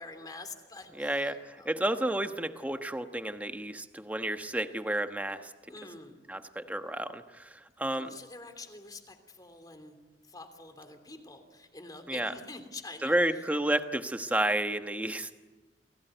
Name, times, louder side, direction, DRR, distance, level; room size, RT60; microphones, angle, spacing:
voice 1, 0.0-1.7 5.7-6.1 7.9-10.0 10.2-13.1, left 3 dB, 20° left, 7 dB, 3.1 m, -46 dB
voice 2, 1.0-5.5 6.3-8.1 12.1-12.3 13.0-15.4, right 1 dB, 10° right, 7 dB, 1.2 m, -31 dB
29.5 x 19.0 x 9.2 m, 1.3 s
head